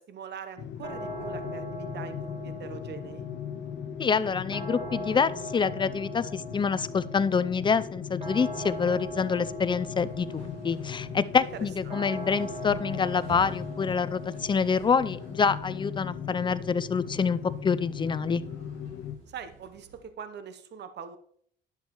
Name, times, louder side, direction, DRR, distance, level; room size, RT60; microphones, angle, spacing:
voice 1, 0.0-3.2 11.3-12.0 19.3-21.2, right 7 dB, 60° right, 10 dB, 0.8 m, -43 dB
sound 1, 0.6-19.2, left 8 dB, 65° left, 0.7 m, -39 dB
sound 2, 0.8-19.7, equal, 35° right, 3.9 m, -42 dB
voice 2, 4.0-18.4, left 5 dB, 25° left, 15 dB, 0.4 m, -27 dB
sound 3, 8.4-20.1, right 5 dB, 85° right, 2.5 m, -52 dB
10.5 x 7.1 x 3.0 m, 0.62 s
cardioid pair, 90°, 20 cm